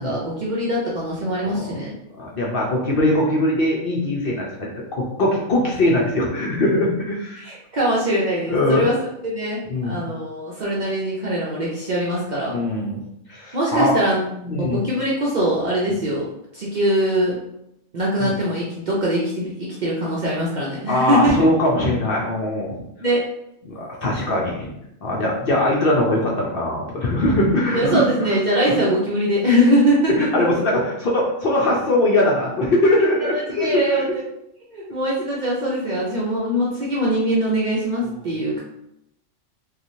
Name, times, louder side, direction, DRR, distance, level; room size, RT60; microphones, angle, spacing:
voice 1, 0.0-1.9 7.4-9.0 9.2-12.5 13.5-16.3 16.5-17.4 17.9-21.3 23.0-23.3 27.7-30.3 33.3-34.0 34.7-38.6, equal, 55° right, -5 dB, 0.5 m, -22 dB
voice 2, 1.4-1.8 2.1-7.5 8.5-8.8 9.7-10.0 12.5-13.0 13.3-13.9 14.5-14.8 15.9-16.0 18.2-18.3 20.9-22.8 23.6-24.7 25.0-28.0 28.3-28.4 30.2-34.1, left 1 dB, 60° left, -3 dB, 0.7 m, -21 dB
3.0 x 2.4 x 2.6 m, 0.80 s
omnidirectional pair, 1.3 m